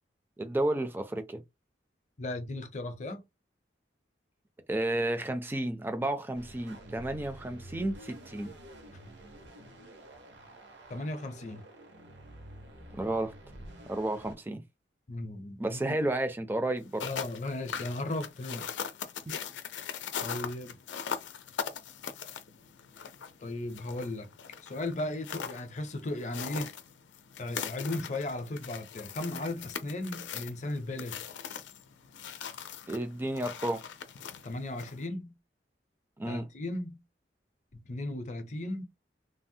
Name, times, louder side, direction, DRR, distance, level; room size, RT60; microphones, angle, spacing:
voice 1, 0.4-1.4 4.7-8.5 13.0-13.3 13.9-14.6 15.6-17.1 32.9-33.8 36.2-36.5, right 1 dB, 10° right, 0.4 m, -32 dB
voice 2, 2.2-3.2 10.9-11.6 15.1-16.0 17.0-18.8 20.2-20.8 23.4-24.3 24.6-26.7 27.4-31.2 34.4-35.3 36.3-37.0 37.7-38.8, left 2 dB, 40° left, 0.5 m, -36 dB
sound 1, 6.3-14.3, right 1 dB, 80° right, 0.9 m, -49 dB
sound 2, 16.8-35.1, left 7 dB, 90° left, 0.5 m, -41 dB
3.3 x 2.0 x 2.6 m
head